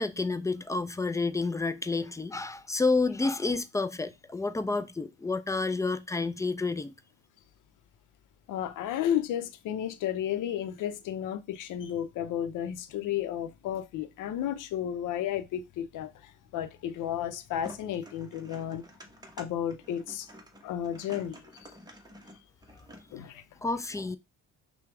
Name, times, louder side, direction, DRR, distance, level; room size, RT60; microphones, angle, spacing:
voice 1, 0.0-6.9 23.6-24.2, left 3 dB, 10° left, 0.3 m, -29 dB
voice 2, 8.5-18.8 19.4-20.3 20.6-21.7 23.1-23.4, left 10 dB, 65° left, 0.7 m, -33 dB
sound 1, 17.5-23.2, equal, 10° right, 1.0 m, -50 dB
5.7 x 2.2 x 3.4 m
cardioid pair, 95°, 33 cm